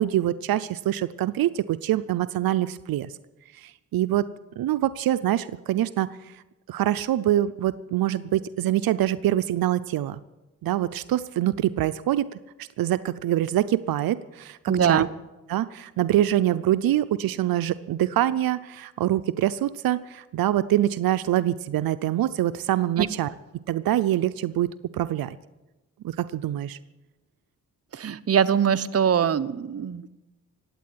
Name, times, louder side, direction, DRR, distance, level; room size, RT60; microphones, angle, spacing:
voice 1, 0.0-3.1 3.6-4.3 4.6-6.2 6.7-10.2 10.6-15.1 15.5-23.3 23.7-25.4 26.0-26.8, right 13 dB, 85° right, 13 dB, 0.6 m, -25 dB
voice 2, 14.7-15.1 23.0-23.1 27.9-30.1, right 8 dB, 45° right, 10 dB, 0.8 m, -22 dB
16.0 x 9.1 x 9.5 m, 1.1 s
cardioid pair, 80°, 34 cm